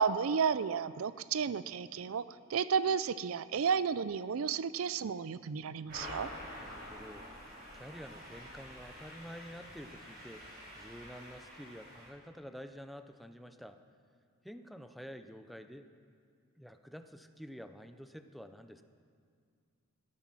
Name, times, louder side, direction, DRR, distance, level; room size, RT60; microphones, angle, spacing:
voice 1, 0.0-2.2 2.5-6.3, right 6 dB, 75° right, 16 dB, 0.4 m, -32 dB
sound 1, 5.9-12.1, equal, 45° right, 5.5 m, -48 dB
voice 2, 6.6-7.3 7.7-13.8 14.4-15.9 16.6-18.8, equal, ahead, 8 dB, 0.6 m, -49 dB
17.0 x 13.0 x 6.1 m, 2.2 s
head